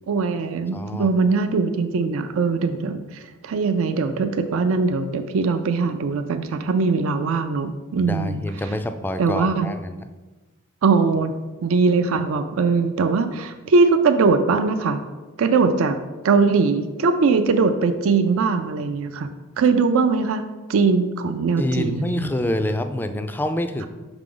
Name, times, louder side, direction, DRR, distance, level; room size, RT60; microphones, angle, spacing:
voice 1, 0.1-8.4 9.2-9.7 10.8-11.3 11.6-15.0 15.4-16.0 16.2-19.3 19.6-20.4 20.7-22.3, right 4 dB, 70° right, 9 dB, 0.4 m, -21 dB
voice 2, 0.7-1.1 8.0-10.1 21.6-23.9, left 1 dB, 10° left, 8 dB, 0.3 m, -26 dB
5.9 x 4.9 x 3.8 m, 1.2 s
head